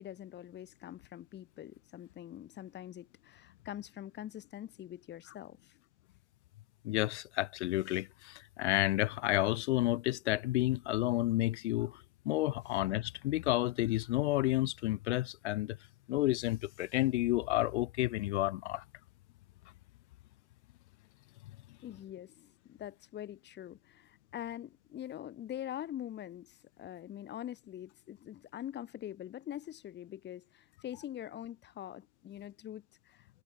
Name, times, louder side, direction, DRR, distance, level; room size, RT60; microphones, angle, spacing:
voice 1, 0.0-5.7 21.8-33.3, left 11 dB, 25° left, 2.5 m, -44 dB
voice 2, 6.8-15.8 16.1-18.8, left 17 dB, 60° left, 2.9 m, -31 dB
hypercardioid pair, 105°, 38 cm